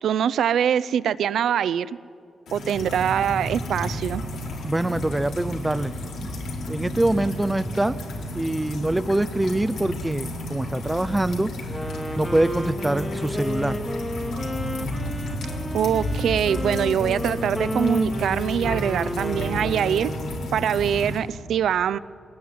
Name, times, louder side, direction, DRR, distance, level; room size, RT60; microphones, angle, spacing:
voice 1, 0.0-1.9 2.5-4.2 15.7-20.1 20.5-22.0, right 9 dB, 80° right, 18 dB, 0.5 m, -23 dB
sound 1, 2.5-21.2, left 1 dB, 80° left, 4.0 m, -32 dB
voice 2, 4.6-5.9 6.7-8.0 8.3-11.5 12.2-13.8, right 1 dB, 10° right, 14 dB, 0.5 m, -24 dB
Wind instrument woodwind instrument, 11.6-20.6, equal, 10° left, 2.3 m, -32 dB
22.0 x 19.0 x 9.5 m, 2.4 s
wide cardioid pair, 165°, 0 cm